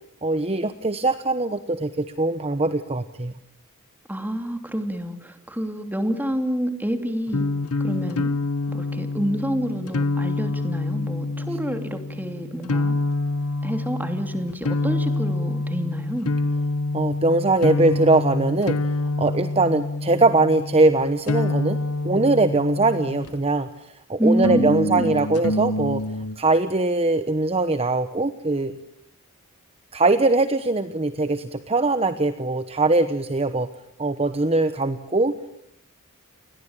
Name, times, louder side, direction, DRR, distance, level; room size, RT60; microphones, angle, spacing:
voice 1, 0.2-3.3 16.9-18.8 19.2-21.8 22.0-23.7 24.1-26.0 26.4-28.7 29.9-33.7 34.0-35.4, right 2 dB, 25° right, 11 dB, 1.1 m, -21 dB
voice 2, 4.1-7.5 7.8-8.3 8.7-13.0 13.6-16.3 24.2-25.1, equal, 10° right, 7 dB, 2.9 m, -28 dB
sound 1, 7.3-23.6 24.4-26.4, left 2 dB, 85° left, 1.3 m, -26 dB
29.5 x 22.0 x 8.9 m, 0.75 s
head